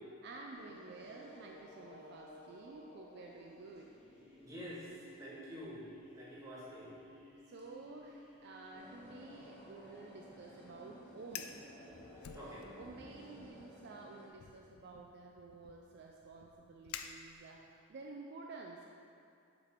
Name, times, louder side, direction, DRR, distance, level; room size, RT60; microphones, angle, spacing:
voice 1, 0.2-4.0 7.5-11.6 12.7-18.9, right 3 dB, 50° right, 0 dB, 0.3 m, -51 dB
sound 1, 0.5-13.5, left 1 dB, 30° left, 1.0 m, -58 dB
voice 2, 4.4-4.9 5.2-7.0 11.9-12.0 12.3-12.7, equal, 15° right, -8 dB, 1.3 m, -48 dB
sound 2, 8.8-14.3, equal, 10° left, 0.8 m, -56 dB
Fire, 11.2-11.6 12.2-13.0 13.4-13.7 14.4-17.7, left 8 dB, 75° left, 0.3 m, -50 dB
7.3 x 3.3 x 4.5 m, 2.4 s
head